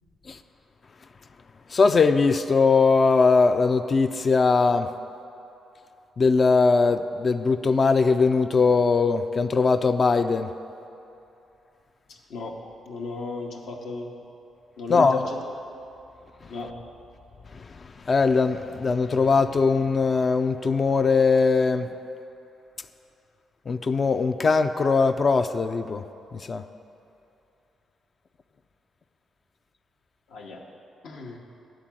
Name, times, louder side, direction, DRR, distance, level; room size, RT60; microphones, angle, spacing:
voice 1, 1.7-4.9 6.2-10.5 14.9-15.2 18.1-21.9 23.7-26.0 26.3-26.6, left 4 dB, 45° left, 9 dB, 0.3 m, -20 dB
voice 2, 12.1-12.6 12.9-14.2 14.8-15.4 16.5-16.7 30.3-30.6 31.0-31.4, left 4 dB, 75° left, 0 dB, 1.0 m, -33 dB
10.5 x 3.8 x 7.4 m, 2.8 s
supercardioid pair, 60°, 0 cm